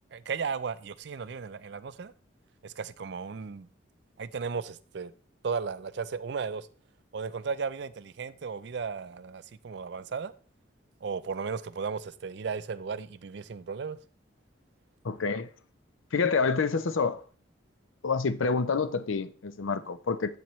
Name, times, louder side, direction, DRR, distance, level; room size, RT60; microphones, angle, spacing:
voice 1, 0.1-2.1 2.6-3.7 4.2-5.1 5.4-6.7 7.1-10.3 11.0-14.0, right 5 dB, 60° right, 0.4 m, -35 dB
voice 2, 15.0-15.5 16.1-17.2 18.0-20.4, left 4 dB, 85° left, 0.6 m, -28 dB
8.1 x 7.4 x 3.1 m
head